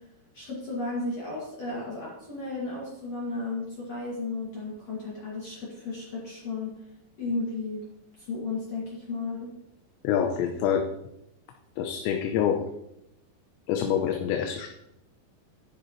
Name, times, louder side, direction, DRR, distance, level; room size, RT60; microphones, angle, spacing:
voice 1, 0.3-6.7 7.2-7.8 8.2-9.5, left 3 dB, 45° left, -6 dB, 2.6 m, -34 dB
voice 2, 10.0-10.8 11.8-12.6 13.7-14.7, left 9 dB, 80° left, 3 dB, 3.0 m, -26 dB
11.0 x 10.5 x 3.1 m, 0.84 s
omnidirectional pair, 5.3 m